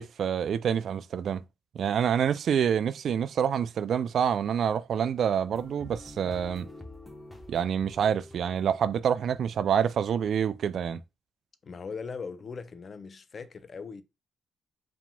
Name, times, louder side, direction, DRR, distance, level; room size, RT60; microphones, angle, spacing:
voice 1, 0.0-1.4 1.7-6.7 7.5-11.0, right 8 dB, 60° right, 0.3 m, -27 dB
sound 1, 5.5-9.9, left 1 dB, 5° left, 0.9 m, -48 dB
voice 2, 11.6-14.0, left 5 dB, 40° left, 0.5 m, -39 dB
4.8 x 3.6 x 2.2 m
cardioid pair, 90°, 0 cm